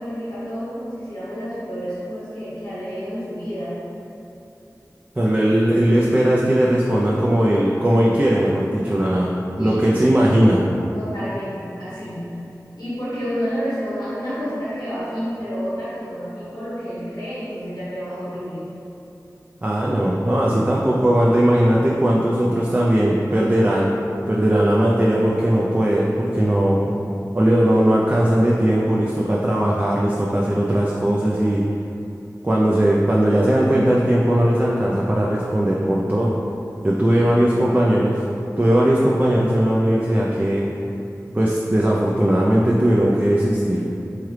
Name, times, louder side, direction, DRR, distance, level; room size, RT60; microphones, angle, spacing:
voice 1, 0.0-3.7 9.5-9.8 10.9-12.2 12.8-18.6 37.1-37.3 37.5-37.9, equal, 90° left, -12 dB, 1.1 m, -30 dB
voice 2, 5.2-9.3 9.6-10.6 19.6-26.9 27.3-31.6 32.4-36.3 36.8-38.2 38.6-40.6 41.3-43.8, right 1 dB, 25° right, -4 dB, 0.4 m, -18 dB
3.5 x 3.2 x 3.1 m, 2.8 s
wide cardioid pair, 45°, 7 cm